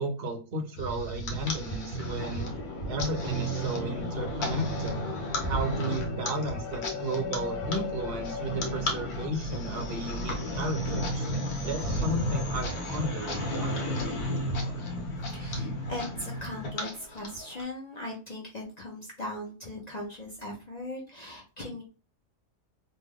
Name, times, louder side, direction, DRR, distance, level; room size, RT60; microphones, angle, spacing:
voice 1, 0.0-2.5 2.9-5.0 5.4-11.3 11.6-14.1, right 1 dB, 55° right, 4 dB, 0.7 m, -34 dB
sound 1, 0.8-17.6, left 1 dB, 75° left, 1.4 m, -33 dB
sound 2, 1.9-2.6 3.2-4.0 4.5-5.2 5.8-6.5 7.1-7.8 8.5-9.1 10.7-10.9 11.3-11.6 12.0-12.2 12.6-12.9 13.3-13.5, right 7 dB, 85° right, 1.2 m, -37 dB
voice 2, 15.2-21.8, left 1 dB, 45° left, -3 dB, 0.5 m, -39 dB
3.3 x 2.1 x 3.5 m, 0.34 s
omnidirectional pair, 1.6 m